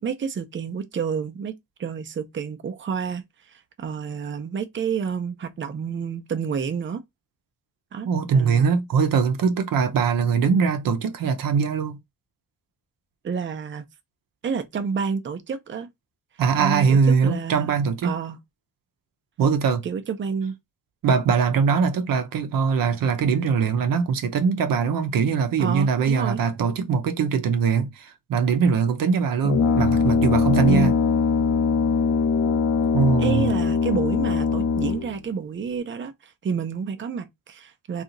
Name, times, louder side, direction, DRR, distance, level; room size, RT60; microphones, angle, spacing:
voice 1, 0.0-1.5 1.8-7.0 7.9-8.8 13.2-13.9 14.4-15.9 16.6-17.7 18.0-18.4 19.8-20.5 25.6-26.4 30.7-30.9 33.2-38.0, right 6 dB, 35° right, 0.5 m, -29 dB
voice 2, 8.0-12.0 16.4-18.1 19.4-19.9 21.0-30.9 32.9-33.5, right 6 dB, 85° right, 0.7 m, -22 dB
Brass instrument, 29.4-35.2, left 5 dB, 60° left, 0.6 m, -21 dB
2.8 x 2.4 x 3.7 m
cardioid pair, 90°, 33 cm